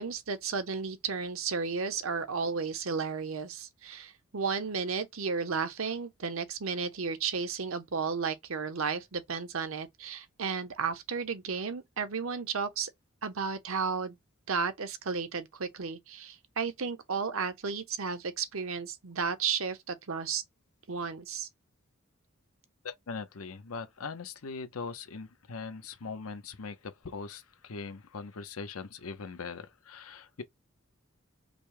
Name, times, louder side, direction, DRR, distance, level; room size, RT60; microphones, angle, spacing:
voice 1, 0.0-12.9 13.2-14.2 14.5-20.4 20.9-21.5, right 5 dB, 70° right, 0.8 m, -33 dB
voice 2, 22.8-30.4, left 4 dB, 90° left, 0.8 m, -41 dB
5.2 x 2.1 x 4.7 m
head